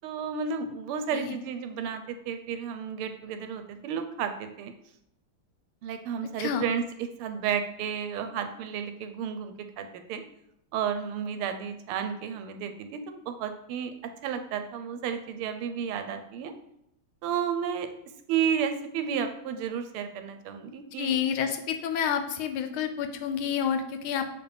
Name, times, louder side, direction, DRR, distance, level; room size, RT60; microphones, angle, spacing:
voice 1, 0.0-4.7 5.8-6.8 7.2-10.2 10.7-13.9 14.2-16.5 17.2-17.9 18.3-21.2, right 7 dB, 85° right, 8 dB, 1.5 m, -32 dB
voice 2, 21.0-24.3, left 8 dB, 80° left, 8 dB, 1.4 m, -29 dB
6.7 x 4.2 x 3.4 m, 0.77 s
omnidirectional pair, 2.4 m